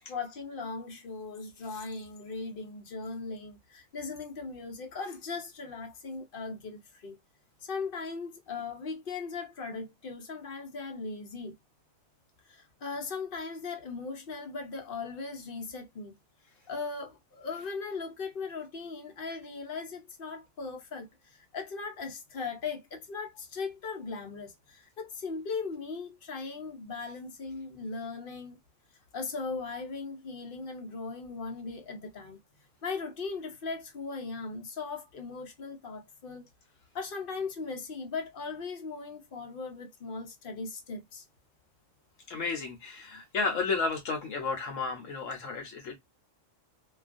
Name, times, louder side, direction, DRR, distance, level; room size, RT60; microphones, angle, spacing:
voice 1, 0.1-7.2 7.6-11.6 12.5-16.1 16.7-28.6 29.1-32.4 32.8-36.5 36.9-41.2, left 4 dB, 55° left, 0.7 m, -38 dB
voice 2, 42.3-46.0, left 4 dB, 75° left, 1.0 m, -32 dB
2.3 x 2.3 x 2.4 m
omnidirectional pair, 1.4 m